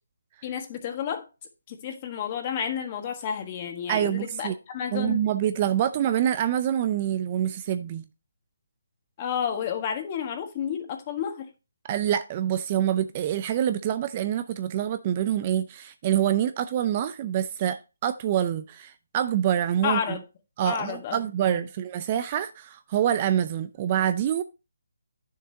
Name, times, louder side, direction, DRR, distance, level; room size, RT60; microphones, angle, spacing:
voice 1, 0.4-1.3 1.7-5.3 9.2-11.5 19.8-20.2 20.6-21.6, left 8 dB, 30° left, 1.5 m, -31 dB
voice 2, 3.9-4.5 4.9-8.1 11.9-20.2 20.6-24.4, right 10 dB, 30° right, 0.5 m, -26 dB
9.3 x 6.7 x 2.8 m
hypercardioid pair, 160°, 0 cm